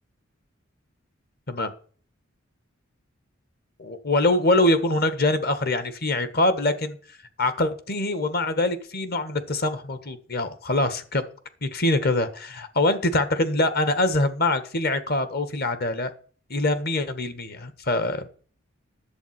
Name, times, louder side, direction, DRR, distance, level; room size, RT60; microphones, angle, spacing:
voice 1, 3.8-7.0 7.4-11.2 11.6-16.1 16.5-18.3, left 2 dB, 50° left, 12 dB, 1.6 m, -24 dB
11.0 x 8.1 x 6.0 m, 0.42 s
head